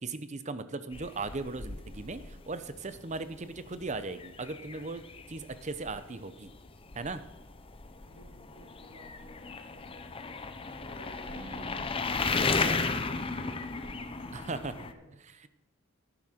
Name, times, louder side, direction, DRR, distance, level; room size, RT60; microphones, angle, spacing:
voice 1, 0.0-5.0 5.3-6.5 6.9-7.2 11.3-11.8 14.3-14.7 15.4-15.5, right 3 dB, 30° right, 12 dB, 0.7 m, -38 dB
sound 1, 0.9-14.9, left 4 dB, 25° left, 0.6 m, -35 dB
voice 2, 7.9-10.4 10.7-15.1, equal, 90° right, -4 dB, 5.0 m, -55 dB
11.0 x 11.0 x 4.4 m, 1.0 s
head